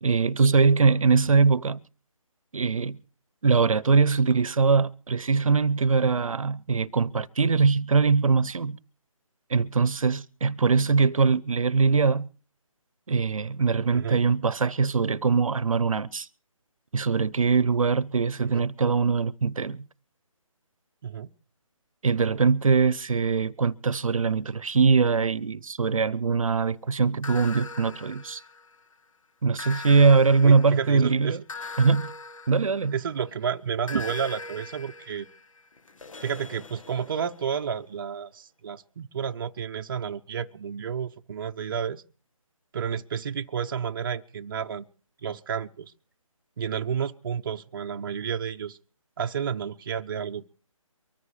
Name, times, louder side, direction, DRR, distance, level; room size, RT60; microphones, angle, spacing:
voice 1, 0.0-1.8 2.5-3.0 3.4-8.8 9.5-12.3 13.1-16.3 16.9-19.8 22.0-28.4 29.4-31.4 31.8-32.1 32.5-33.0 33.9-34.0, right 5 dB, 75° right, 0.8 m, -22 dB
sound 1, 27.2-28.9 29.6-33.3 33.9-37.6, left 4 dB, 65° left, 0.9 m, -41 dB
voice 2, 30.4-31.4 32.9-35.3 36.2-42.0 42.7-44.9 45.2-45.9 46.6-48.8 49.2-50.5, right 7 dB, 40° right, 0.7 m, -31 dB
23.5 x 14.0 x 3.2 m
figure-of-eight pair, 155°, 18 cm